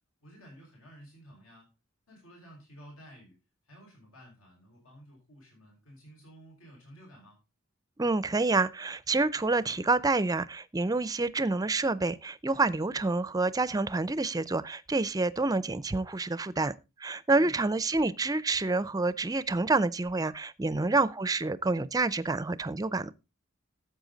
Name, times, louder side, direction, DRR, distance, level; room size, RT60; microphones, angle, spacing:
voice 1, 0.2-1.7 2.1-3.3 3.6-7.4 17.3-17.6 20.8-21.0, equal, 75° left, 5.5 m, -53 dB
voice 2, 8.0-16.7 17.0-23.1, right 3 dB, 15° right, 0.5 m, -28 dB
13.0 x 8.0 x 4.0 m
head